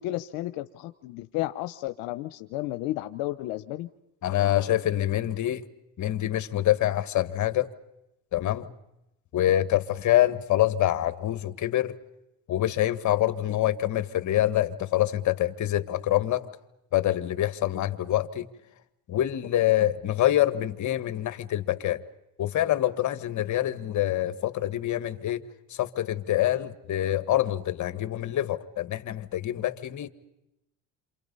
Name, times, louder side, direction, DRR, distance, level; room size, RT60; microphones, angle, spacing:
voice 1, 0.0-3.9, left 16 dB, 90° left, 10 dB, 0.9 m, -32 dB
voice 2, 4.2-5.6 6.0-7.7 8.3-8.7 9.3-11.9 12.5-16.5 16.9-18.5 19.1-22.0 22.4-25.4 25.7-30.1, left 13 dB, 55° left, 11 dB, 1.7 m, -26 dB
28.5 x 27.0 x 5.5 m, 0.89 s
supercardioid pair, 85°, 35 cm